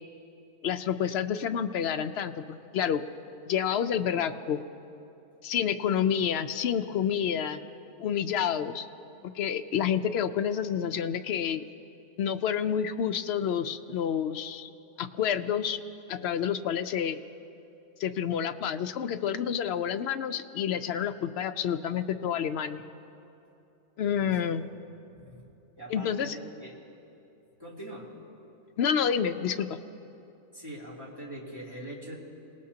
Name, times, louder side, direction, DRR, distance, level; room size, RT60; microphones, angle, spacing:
voice 1, 0.6-3.0 3.5-4.6 5.4-7.6 8.0-8.9 9.3-11.7 12.2-14.7 15.0-15.8 16.1-17.2 18.0-22.8 24.0-24.6 25.9-26.4 28.8-29.8, left 8 dB, 65° left, 9 dB, 0.7 m, -29 dB
voice 2, 25.8-26.7 27.6-28.1 30.5-32.1, right 1 dB, 15° right, -6 dB, 2.9 m, -42 dB
27.5 x 18.5 x 2.8 m, 2.8 s
omnidirectional pair, 1.4 m